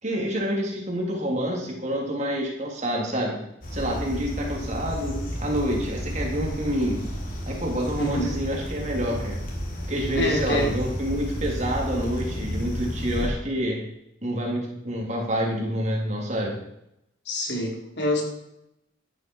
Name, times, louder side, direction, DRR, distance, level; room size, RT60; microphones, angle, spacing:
voice 1, 0.0-3.4 3.7-7.0 7.5-9.4 9.9-13.8 14.2-16.5, equal, 35° right, -1 dB, 3.7 m, -27 dB
sound 1, 3.6-13.3, equal, 45° left, 3.5 m, -32 dB
voice 2, 10.1-10.8 17.3-18.2, equal, 60° left, 0 dB, 4.0 m, -26 dB
13.5 x 12.5 x 4.9 m, 0.82 s
head